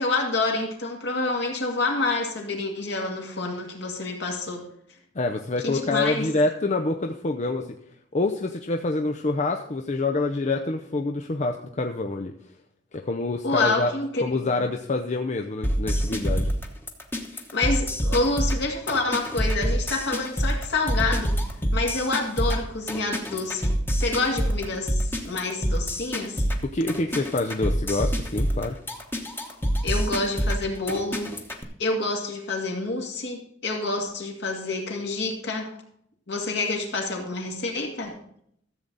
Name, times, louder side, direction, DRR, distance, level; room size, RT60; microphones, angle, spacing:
voice 1, 0.0-4.6 5.6-6.3 13.4-14.6 17.3-21.4 21.7-26.4 29.8-31.3 31.8-35.7 36.3-38.2, left 3 dB, 60° left, 1 dB, 2.3 m, -28 dB
voice 2, 5.1-7.7 8.1-12.3 12.9-13.9 14.2-16.5 26.6-28.8, left 2 dB, 40° left, 3 dB, 0.7 m, -26 dB
sound 1, 15.6-31.6, equal, 10° left, 1.2 m, -26 dB
14.0 x 7.7 x 4.0 m, 0.69 s
head